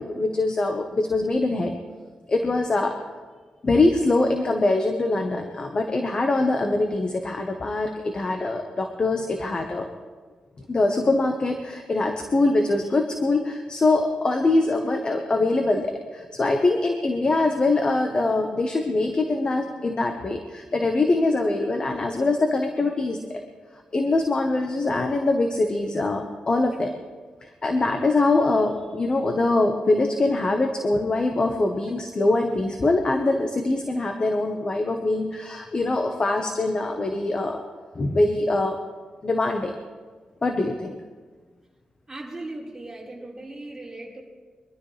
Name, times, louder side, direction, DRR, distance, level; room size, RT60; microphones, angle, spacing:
voice 1, 0.0-1.8 2.3-3.0 3.6-9.9 10.7-23.4 23.9-26.9 27.4-37.6 37.9-38.8 39.2-39.7 40.4-41.0, left 2 dB, 40° left, 4 dB, 1.3 m, -23 dB
voice 2, 42.1-44.2, right 2 dB, 15° right, -6 dB, 5.1 m, -38 dB
23.5 x 13.0 x 3.4 m, 1.5 s
cardioid pair, 85°, 2 cm